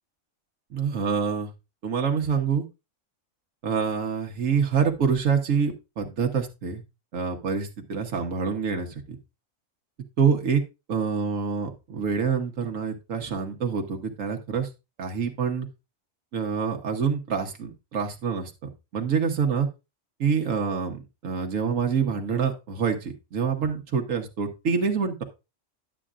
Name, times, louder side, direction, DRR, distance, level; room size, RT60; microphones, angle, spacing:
voice 1, 0.7-1.5 1.8-2.6 3.6-6.8 7.1-9.2 10.2-10.6 10.9-14.7 15.0-15.7 16.3-18.5 18.9-19.7 20.2-25.2, right 6 dB, 90° right, 3 dB, 1.4 m, -26 dB
11.5 x 8.3 x 2.4 m, 0.26 s
omnidirectional pair, 1.3 m